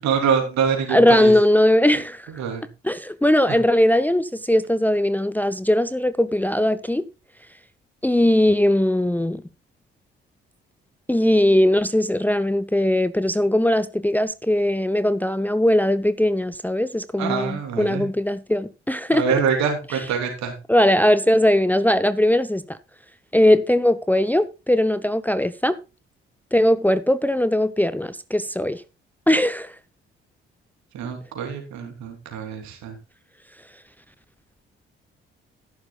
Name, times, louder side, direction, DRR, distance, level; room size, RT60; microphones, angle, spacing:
voice 1, 0.0-1.3 2.4-2.6 17.2-18.1 19.1-20.5 30.9-32.9, right 6 dB, 65° right, 3.3 m, -25 dB
voice 2, 0.9-2.2 2.8-7.0 8.0-9.4 11.1-19.2 20.7-22.6 23.3-25.7 26.5-28.8 29.3-29.7, left 1 dB, 5° left, 0.7 m, -19 dB
13.5 x 11.5 x 2.4 m
figure-of-eight pair, 40°, 30 cm